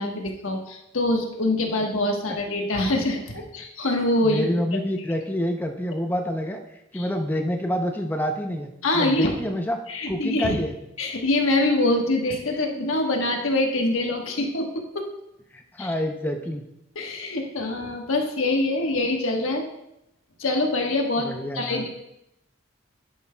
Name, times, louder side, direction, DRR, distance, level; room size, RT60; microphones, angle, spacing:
voice 1, 0.0-4.5 6.9-7.1 8.8-9.3 9.9-10.5 11.0-15.1 15.8-15.9 16.9-19.7 20.4-21.9, left 2 dB, 90° left, 2 dB, 1.2 m, -24 dB
voice 2, 4.2-9.8 10.1-10.8 12.7-12.8 15.5-16.6 21.2-21.8, equal, 10° left, 4 dB, 0.5 m, -28 dB
10.5 x 9.3 x 2.2 m, 0.84 s
head